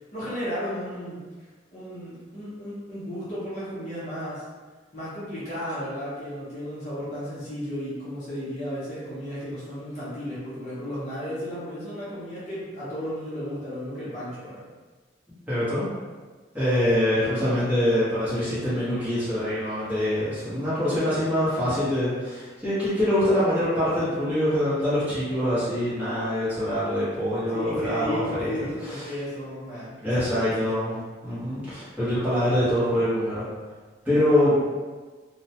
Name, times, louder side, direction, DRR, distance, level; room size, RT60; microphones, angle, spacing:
voice 1, 0.1-1.2 1.7-4.4 4.9-14.6 27.5-30.7 34.3-34.5, equal, 35° left, -10 dB, 0.7 m, -34 dB
voice 2, 15.5-15.9 16.5-28.5 28.8-29.0 30.0-33.4 34.0-34.5, left 1 dB, 10° right, -13 dB, 0.9 m, -24 dB
2.2 x 2.1 x 2.7 m, 1.4 s
head